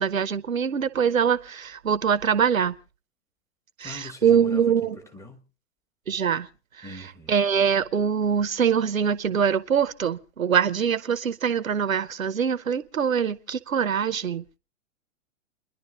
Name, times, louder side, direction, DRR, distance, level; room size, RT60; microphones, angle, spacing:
voice 1, 0.0-2.7 3.8-5.0 6.1-6.5 6.8-14.4, right 7 dB, 85° right, 0.8 m, -24 dB
voice 2, 3.8-5.4 6.8-7.4, left 2 dB, 5° left, 1.2 m, -42 dB
29.5 x 11.0 x 2.4 m
figure-of-eight pair, 115°, 40 cm